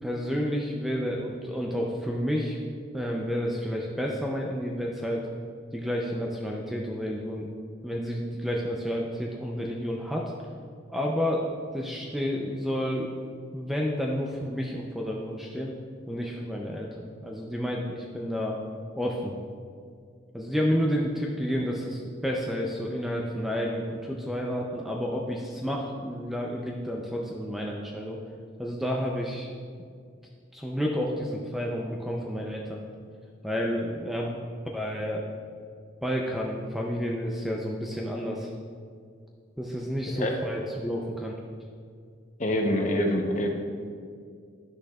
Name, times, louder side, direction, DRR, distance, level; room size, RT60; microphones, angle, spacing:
voice 1, 0.0-2.6 2.9-5.3 5.7-7.5 7.8-10.3 10.9-11.5 11.7-13.1 13.5-15.7 16.1-18.6 19.0-19.4 20.3-28.2 28.6-29.5 30.5-32.8 33.4-34.4 34.7-35.3 36.0-38.5 39.6-41.4, equal, ahead, -2 dB, 0.4 m, -30 dB
voice 2, 42.4-43.5, left 1 dB, 35° left, 2 dB, 0.7 m, -26 dB
9.9 x 6.2 x 2.3 m, 2.2 s
head